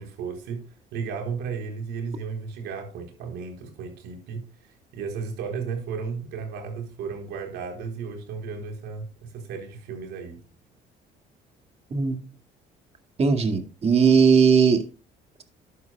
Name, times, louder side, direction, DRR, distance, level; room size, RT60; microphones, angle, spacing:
voice 1, 0.0-10.4, right 5 dB, 85° right, 4.2 m, -34 dB
voice 2, 13.2-14.8, right 6 dB, 35° right, 2.2 m, -18 dB
12.5 x 11.0 x 2.3 m
cardioid pair, 110°, 17 cm